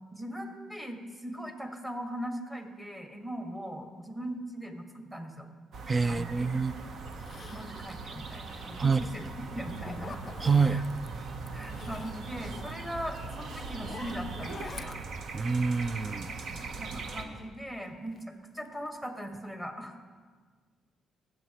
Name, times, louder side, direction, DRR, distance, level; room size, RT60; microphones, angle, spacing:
voice 1, 0.1-5.5 6.1-6.5 7.5-9.2 9.5-10.2 10.7-10.8 11.5-15.0 16.4-18.2 18.5-20.0, equal, 10° right, 3 dB, 1.7 m, -40 dB
sound 1, 5.7-17.2, right 4 dB, 65° right, 0.8 m, -40 dB
voice 2, 5.9-6.8 8.8-9.0 10.4-10.8 15.3-16.3, right 5 dB, 30° right, 15 dB, 0.3 m, -26 dB
Zipper (clothing), 6.5-6.6 7.1-9.1 9.5-11.1 11.4-16.6 17.0-18.2 18.6-19.0 19.4-19.5, left 5 dB, 40° left, 0.4 m, -48 dB
20.5 x 7.7 x 3.0 m, 1.5 s
cardioid pair, 90°, 0 cm